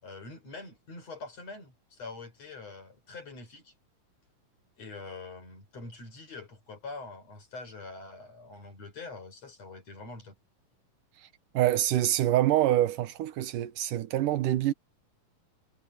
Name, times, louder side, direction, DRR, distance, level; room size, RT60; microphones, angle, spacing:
voice 1, 0.0-3.7 4.8-10.3, left 3 dB, 50° left, 6.6 m, -44 dB
voice 2, 11.5-14.7, right 13 dB, 80° right, 2.6 m, -25 dB
omnidirectional pair, 3.8 m